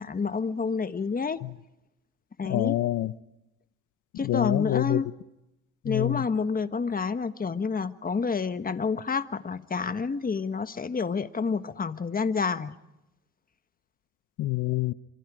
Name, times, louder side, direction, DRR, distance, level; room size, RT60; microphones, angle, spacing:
voice 1, 0.0-1.4 2.4-2.8 4.2-5.1 5.8-12.7, left 5 dB, 30° left, 1.4 m, -29 dB
voice 2, 2.4-3.1 4.2-5.0 5.8-6.3 14.4-14.9, left 16 dB, 80° left, 0.9 m, -26 dB
27.5 x 26.0 x 5.0 m
cardioid pair, 90°, 30 cm